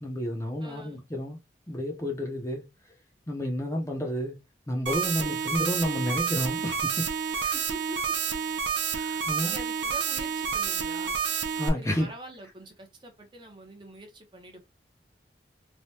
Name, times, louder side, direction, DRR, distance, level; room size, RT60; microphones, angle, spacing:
voice 1, 0.0-1.4 1.7-2.7 3.3-4.4 4.7-7.1 7.3-7.5 8.9-9.6 11.6-12.1, equal, 15° left, 0.6 m, -30 dB
voice 2, 0.6-1.0 5.2-5.4 7.5-8.0 9.4-11.1 11.8-14.6, equal, 25° right, 0.7 m, -45 dB
sound 1, 4.9-11.7, right 6 dB, 90° right, 0.6 m, -29 dB
3.3 x 2.2 x 2.7 m
head